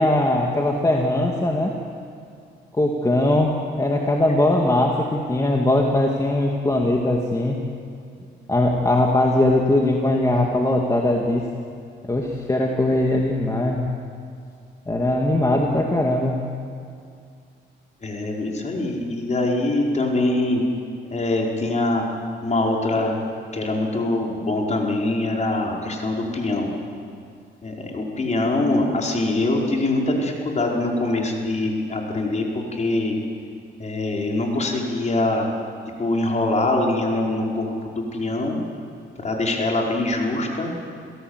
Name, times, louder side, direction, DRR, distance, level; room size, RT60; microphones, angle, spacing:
voice 1, 0.0-1.7 2.7-7.6 8.5-11.5 12.1-13.9 14.9-16.4, left 1 dB, 15° left, 0 dB, 2.3 m, -20 dB
voice 2, 18.0-20.6 21.1-23.1 23.5-26.7 27.6-33.2 33.8-35.5 36.0-38.6 39.2-40.7, left 2 dB, 35° left, -1 dB, 4.9 m, -23 dB
28.5 x 17.0 x 8.1 m, 2.3 s
cardioid pair, 90°, 20 cm